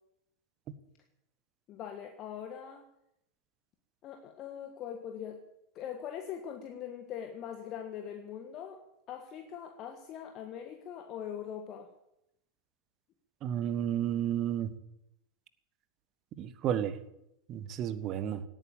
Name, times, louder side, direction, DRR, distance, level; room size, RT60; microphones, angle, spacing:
voice 1, 1.7-2.8 4.0-5.4 5.7-8.8 9.1-11.9, left 9 dB, 35° left, 5 dB, 1.5 m, -42 dB
voice 2, 13.4-14.7 16.4-16.9 17.5-18.4, right 10 dB, 35° right, 13 dB, 1.3 m, -32 dB
18.0 x 9.1 x 8.8 m, 0.83 s
figure-of-eight pair, 90°, 0 cm